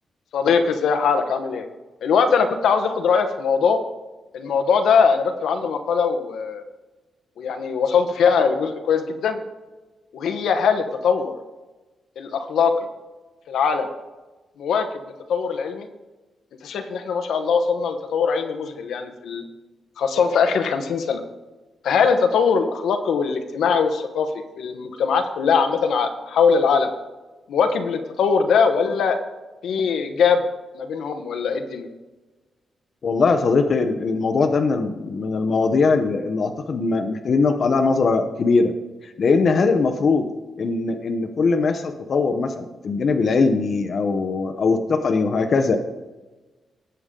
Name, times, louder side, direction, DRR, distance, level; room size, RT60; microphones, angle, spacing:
voice 1, 0.3-1.6 2.0-3.8 4.3-6.6 7.4-9.4 10.1-11.3 12.2-12.9 13.5-13.9 14.6-15.9 16.6-19.4 20.0-21.2 21.8-24.3 24.6-26.9 27.5-29.2 29.6-30.4 30.7-31.9, left 6 dB, 85° left, 6 dB, 1.1 m, -21 dB
voice 2, 33.0-38.7 39.0-40.3 40.6-45.8, left 4 dB, 50° left, 7 dB, 0.8 m, -21 dB
18.0 x 6.9 x 3.7 m, 1.2 s
cardioid pair, 125°, 0 cm